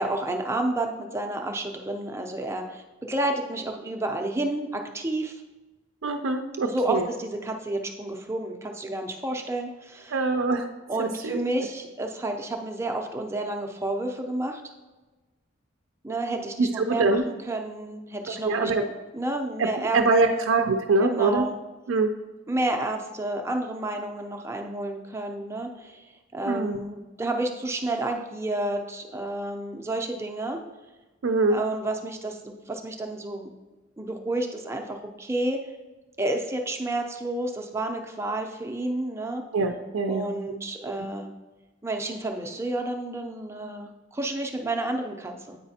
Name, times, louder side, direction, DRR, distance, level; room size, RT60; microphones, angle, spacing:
voice 1, 0.0-5.4 6.6-10.2 10.9-14.6 16.0-20.0 20.3-20.4 21.0-21.5 22.5-30.6 31.5-33.5 34.0-35.6 36.2-39.4 40.1-41.3 41.8-45.6, right 2 dB, 15° right, 3 dB, 0.5 m, -30 dB
voice 2, 6.0-7.1 10.1-10.7 11.0-11.4 16.6-17.2 18.4-18.9 19.6-21.5 21.9-22.1 26.5-26.8 31.2-31.6 39.5-40.3, right 3 dB, 75° right, 5 dB, 0.4 m, -24 dB
8.7 x 5.0 x 2.8 m, 1.2 s
head